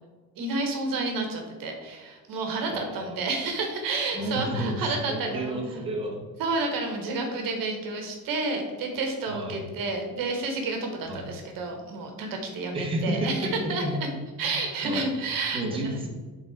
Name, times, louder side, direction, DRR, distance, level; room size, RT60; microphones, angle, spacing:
voice 1, 0.4-5.6 6.4-13.8 14.4-16.0, right 3 dB, 60° right, 3 dB, 1.4 m, -30 dB
voice 2, 2.7-3.2 4.1-4.8 5.1-6.2 9.3-9.6 11.1-11.2 12.7-14.0 14.8-15.1 15.5-16.1, right 1 dB, 15° right, -4 dB, 1.5 m, -31 dB
8.7 x 3.9 x 4.8 m, 1.4 s
cardioid pair, 160°, 38 cm